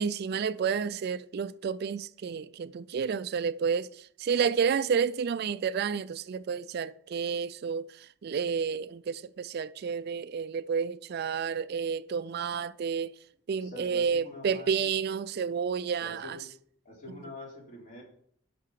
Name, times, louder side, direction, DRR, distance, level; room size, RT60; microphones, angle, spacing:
voice 1, 0.0-13.1 13.5-16.4, right 6 dB, 50° right, 0.3 m, -30 dB
voice 2, 13.6-14.9 16.0-16.5 16.9-18.0, left 2 dB, 40° left, 3.5 m, -45 dB
11.5 x 6.0 x 4.8 m
head